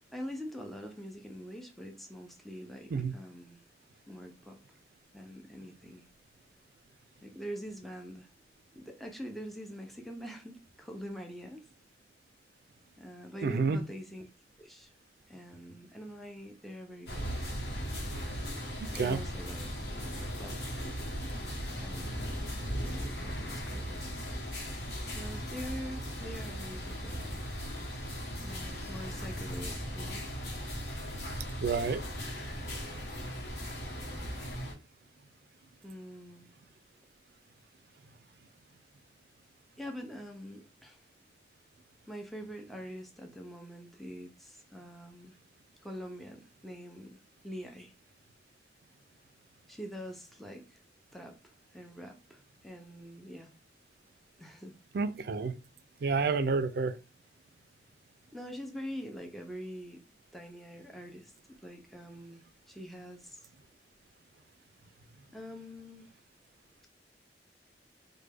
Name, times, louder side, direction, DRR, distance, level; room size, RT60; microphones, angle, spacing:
voice 1, 0.1-3.6 4.1-4.6 5.1-6.1 7.2-8.3 8.7-11.6 13.0-14.3 14.6-14.9 15.3-17.2 18.9-19.7 20.4-20.8 21.8-22.2 22.8-24.0 25.1-27.4 28.4-30.2 35.8-36.5 39.8-41.0 42.1-45.4 45.8-47.9 49.7-50.8 51.1-53.5 54.4-54.8 58.3-60.1 60.3-61.3 61.6-63.5 65.3-66.1, equal, ahead, 0.4 m, -44 dB
voice 2, 13.4-13.8 18.8-19.2 31.6-32.0 54.9-55.5 56.0-56.9, right 4 dB, 60° right, 0.4 m, -29 dB
sound 1, 17.1-34.7, equal, 65° left, 1.0 m, -38 dB
3.2 x 2.2 x 3.3 m
head